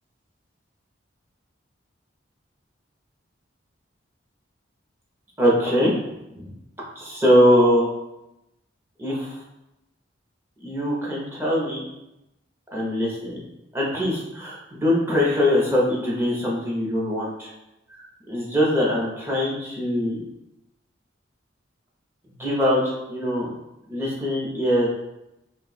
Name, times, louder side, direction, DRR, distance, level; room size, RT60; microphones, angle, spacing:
voice 1, 5.4-5.9 6.4-6.5 7.0-7.9 9.0-9.3 10.6-11.8 12.7-13.4 13.7-17.5 17.9-20.2 22.4-23.5 23.9-24.9, equal, 10° right, -5 dB, 0.7 m, -22 dB
2.6 x 2.3 x 4.0 m, 0.91 s
head